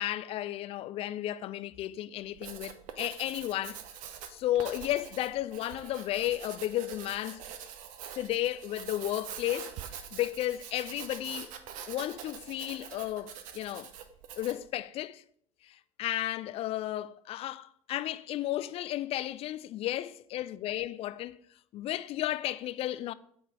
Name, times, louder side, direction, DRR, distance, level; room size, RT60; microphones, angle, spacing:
voice 1, 0.0-3.8 4.3-7.4 8.2-11.5 11.9-13.9 14.4-15.2 15.6-21.4 21.7-23.1, left 14 dB, 35° left, 0.4 m, -33 dB
Writing, 2.2-14.7, right 9 dB, 50° right, 0.8 m, -45 dB
8.5 x 3.9 x 5.0 m
figure-of-eight pair, 65°, 17 cm